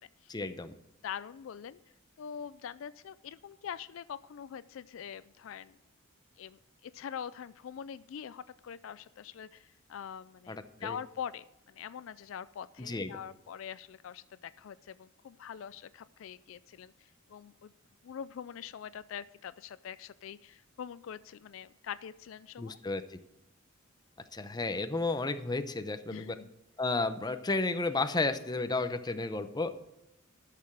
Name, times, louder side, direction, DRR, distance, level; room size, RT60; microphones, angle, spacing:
voice 1, 0.3-0.7 10.5-11.0 12.8-13.1 22.6-23.2 24.3-26.4 26.8-29.7, left 3 dB, 20° left, 9 dB, 0.7 m, -32 dB
voice 2, 1.0-1.8 2.2-5.8 6.4-17.7 18.0-22.8 26.1-26.5, left 8 dB, 70° left, 16 dB, 0.3 m, -44 dB
11.5 x 6.7 x 6.2 m, 0.92 s
head